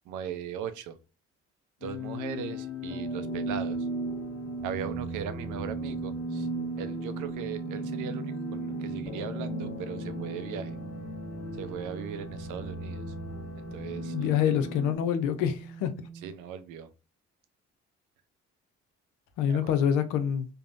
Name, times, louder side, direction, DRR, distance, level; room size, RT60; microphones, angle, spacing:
voice 1, 0.1-1.0 1.8-3.9 4.6-6.5 6.8-10.8 11.5-13.1 13.5-14.3 16.2-16.9 19.5-19.7, right 8 dB, 65° right, 0.5 m, -38 dB
sound 1, 1.8-15.0, right 1 dB, 50° left, 1.1 m, -36 dB
sound 2, 4.8-16.3, right 6 dB, 10° right, 0.4 m, -43 dB
voice 2, 14.1-15.9 19.4-20.5, left 9 dB, 70° left, 0.6 m, -26 dB
3.3 x 2.1 x 2.4 m
hypercardioid pair, 50°, 33 cm